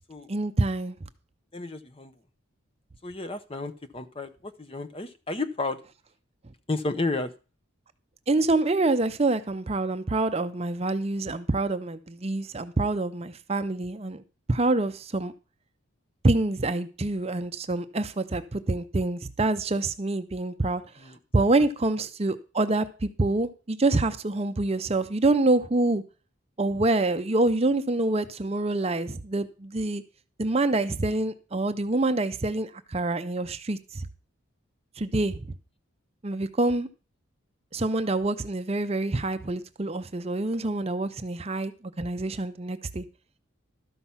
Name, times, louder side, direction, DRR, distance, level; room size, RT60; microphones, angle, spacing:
voice 1, 0.3-1.0 8.3-14.2 14.5-15.3 16.2-20.8 21.3-26.0 26.6-30.0 30.4-34.0 35.0-35.4 36.2-36.9 37.7-43.0, right 2 dB, 30° right, 0.6 m, -26 dB
voice 2, 1.5-2.1 3.0-5.8 6.7-7.3 21.0-21.2, left 3 dB, 25° left, 0.7 m, -32 dB
12.5 x 5.9 x 5.7 m
head